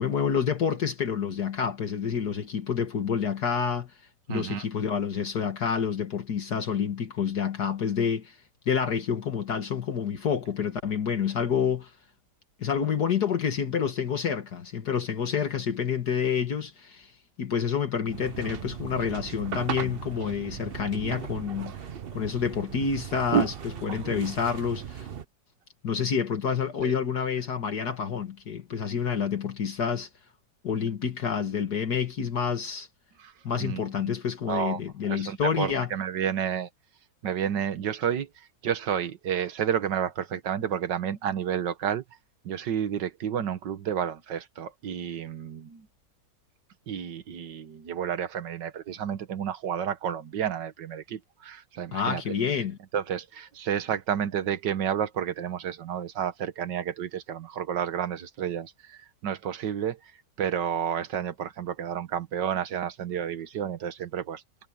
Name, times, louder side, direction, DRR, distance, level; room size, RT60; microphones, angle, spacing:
voice 1, 0.0-3.9 4.3-8.3 8.7-11.9 12.6-17.1 17.4-21.8 22.1-23.5 23.8-25.1 25.8-30.1 30.6-32.9 33.4-35.9 51.9-52.8, left 7 dB, 65° left, 2.1 m, -28 dB
voice 2, 4.3-4.7 23.3-23.5 23.9-24.0 26.8-26.9 33.2-33.3 33.6-34.1 34.5-34.8 35.1-36.7 37.2-42.0 42.4-45.9 46.9-52.2 52.9-60.1 60.4-64.4, right 9 dB, 80° right, 1.9 m, -30 dB
sound 1, 18.1-25.2, right 8 dB, 50° right, 0.7 m, -38 dB
omnidirectional pair, 1.9 m